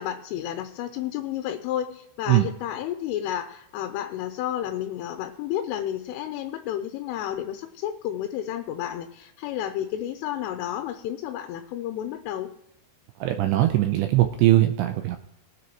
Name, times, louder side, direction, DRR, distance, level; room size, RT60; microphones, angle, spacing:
voice 1, 0.0-12.5, left 11 dB, 85° left, 6 dB, 3.3 m, -31 dB
voice 2, 13.2-15.2, right 15 dB, 85° right, 6 dB, 2.5 m, -20 dB
22.0 x 9.3 x 3.0 m, 0.79 s
omnidirectional pair, 5.7 m